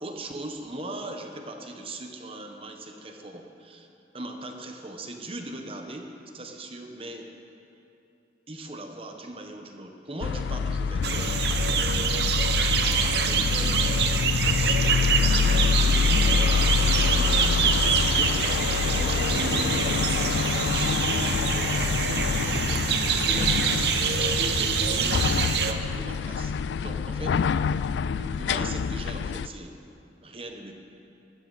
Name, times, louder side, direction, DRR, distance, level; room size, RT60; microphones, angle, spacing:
voice 1, 0.0-3.9 4.1-7.3 8.5-12.1 12.8-17.4 18.1-25.2 25.4-26.5 26.8-27.5 28.0-29.8 30.2-30.7, right 1 dB, 30° right, 3 dB, 1.1 m, -39 dB
sound 1, 10.2-29.5, left 6 dB, 90° left, 0.3 m, -26 dB
sound 2, 11.0-25.7, right 6 dB, 70° right, 0.9 m, -26 dB
22.5 x 13.5 x 4.1 m, 2.8 s
head